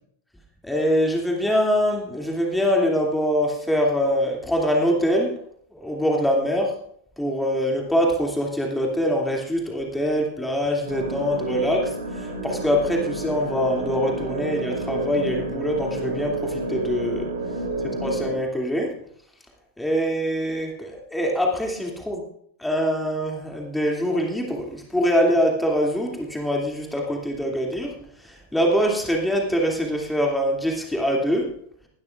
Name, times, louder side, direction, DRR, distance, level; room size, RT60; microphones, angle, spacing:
voice 1, 0.6-5.3 5.7-6.7 7.2-17.3 18.0-18.9 19.8-22.2 22.6-27.9 28.2-31.5, equal, 5° left, 0 dB, 2.5 m, -24 dB
sound 1, 10.8-18.3, right 2 dB, 80° right, 6.0 m, -30 dB
20.5 x 12.0 x 2.4 m, 0.68 s
figure-of-eight pair, 90°, 0 cm